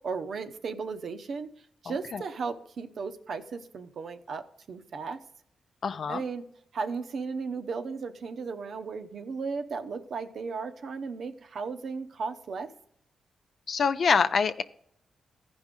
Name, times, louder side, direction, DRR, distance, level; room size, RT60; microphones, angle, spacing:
voice 1, 0.0-1.5 1.8-5.2 6.1-6.4 6.7-12.7, right 4 dB, 65° right, 7 dB, 0.7 m, -35 dB
voice 2, 1.9-2.2 5.8-6.2 13.7-14.6, left 5 dB, 60° left, 11 dB, 0.5 m, -26 dB
15.0 x 5.3 x 3.6 m, 0.70 s
cardioid pair, 80°, 0 cm